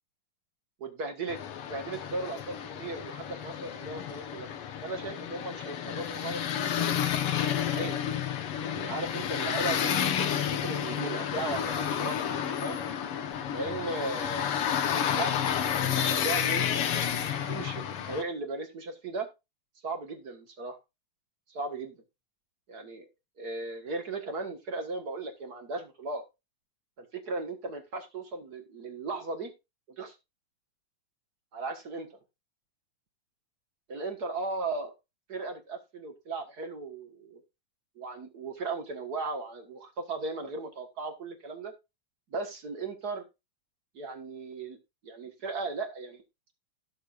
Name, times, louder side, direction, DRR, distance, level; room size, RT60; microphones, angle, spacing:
voice 1, 0.8-1.4 1.7-4.5 4.8-7.0 7.7-8.0 8.6-12.8 13.5-14.5 15.1-17.0 17.5-19.3 19.8-20.8 21.5-22.0 22.7-23.0 23.4-26.2 27.0-29.5 30.0-30.2 31.5-32.2 33.9-34.9 35.3-37.4 38.0-41.7 42.3-43.2 43.9-44.8 45.0-46.2, right 3 dB, 50° right, 6 dB, 1.2 m, -37 dB
sound 1, 1.3-18.2, left 9 dB, 65° left, 1.4 m, -31 dB
17.0 x 6.6 x 2.5 m, 0.24 s
omnidirectional pair, 3.7 m